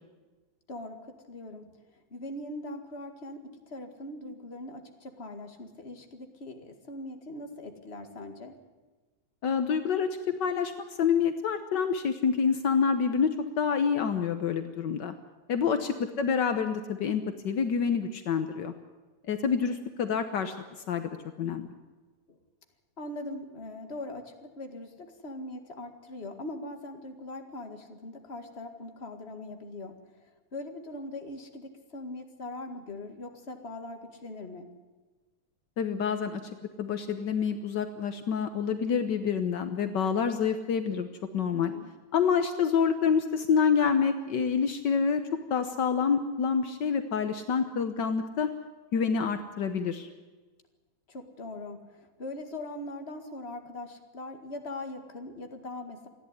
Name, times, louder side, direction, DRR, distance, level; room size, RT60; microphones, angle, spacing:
voice 1, 1.3-3.4 3.7-8.5 15.6-15.9 22.3-22.4 23.0-29.9 30.2-34.6 41.5-41.9 51.1-56.1, left 2 dB, 25° left, 5 dB, 1.8 m, -41 dB
voice 2, 9.4-10.7 11.0-15.1 15.5-18.7 19.3-20.5 20.9-21.1 21.4-21.7 35.8-36.4 36.8-41.1 41.3-41.7 42.1-45.2 45.5-48.5 48.9-50.1, left 6 dB, 75° left, 8 dB, 1.0 m, -27 dB
28.0 x 11.0 x 9.8 m, 1.3 s
omnidirectional pair, 3.4 m